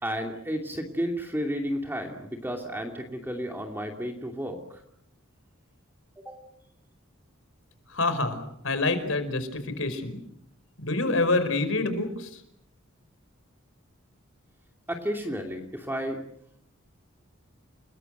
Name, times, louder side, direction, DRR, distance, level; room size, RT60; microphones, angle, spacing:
voice 1, 0.0-4.8 6.2-6.4 14.9-16.2, equal, 10° right, 3 dB, 2.7 m, -32 dB
voice 2, 7.9-10.2 10.8-12.4, left 2 dB, 65° left, 10 dB, 5.1 m, -27 dB
29.5 x 21.5 x 8.0 m, 0.73 s
head